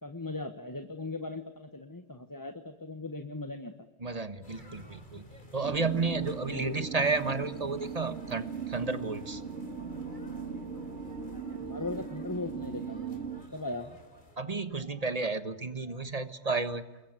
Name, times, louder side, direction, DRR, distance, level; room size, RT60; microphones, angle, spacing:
voice 1, 0.0-3.7 6.5-6.9 11.6-13.9, left 2 dB, 15° left, 8 dB, 1.2 m, -38 dB
voice 2, 4.0-5.3 5.5-9.4 14.4-16.8, right 4 dB, 35° right, 12 dB, 1.4 m, -32 dB
sound 1, 4.4-14.4, equal, 40° left, 3.8 m, -54 dB
sound 2, 5.6-13.4, right 5 dB, 80° right, 2.4 m, -39 dB
29.0 x 21.5 x 9.5 m, 1.1 s
omnidirectional pair, 1.2 m